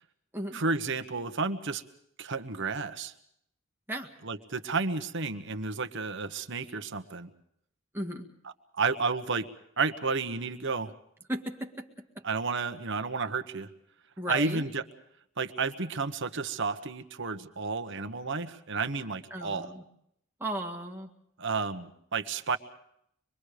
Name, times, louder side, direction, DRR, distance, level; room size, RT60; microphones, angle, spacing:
voice 1, 0.5-1.8 2.2-3.1 4.2-7.3 8.7-9.5 9.8-10.9 12.2-13.7 14.3-14.8 15.4-19.7 21.4-22.6, right 4 dB, 60° right, 7 dB, 1.3 m, -31 dB
voice 2, 7.9-8.3 11.3-11.9 12.2-12.3 14.2-14.6 19.3-19.8 20.4-21.1, right 1 dB, 10° right, 1 dB, 1.9 m, -35 dB
26.0 x 22.5 x 5.0 m, 0.72 s
head